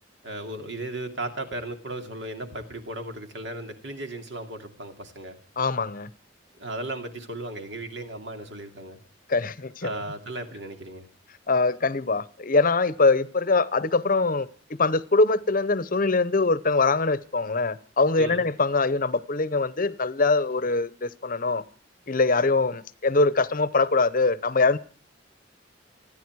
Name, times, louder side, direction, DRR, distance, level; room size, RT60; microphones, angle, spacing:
voice 1, 0.2-5.4 6.5-9.0 9.8-11.1 18.2-18.5, right 2 dB, 70° right, 2.7 m, -36 dB
voice 2, 5.6-6.1 9.3-9.9 11.5-14.5 14.8-21.6 22.1-24.8, left 3 dB, 45° left, 0.9 m, -23 dB
28.5 x 10.0 x 4.7 m
head